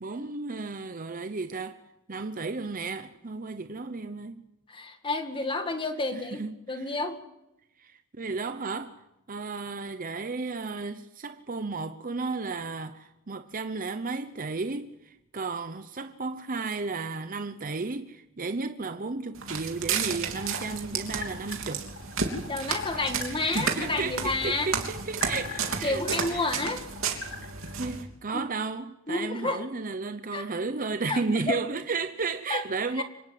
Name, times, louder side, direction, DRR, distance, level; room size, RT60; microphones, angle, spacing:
voice 1, 0.0-1.8 2.1-4.4 6.1-7.0 7.8-21.9 22.9-26.5 27.4-27.5 27.8-33.0, right 4 dB, 40° right, 0.9 m, -33 dB
voice 2, 4.7-6.4 6.7-7.2 22.5-24.7 25.8-26.8 28.3-28.4 29.1-29.6 30.3-30.4 31.1-31.2 31.5-31.6 32.5-32.6 33.0-33.1, left 3 dB, 25° left, 1.9 m, -30 dB
Walk footsteps, 19.4-28.0, right 6 dB, 70° right, 3.3 m, -32 dB
sound 1, 20.4-27.7, left 6 dB, 75° left, 3.7 m, -43 dB
25.5 x 18.5 x 7.7 m
head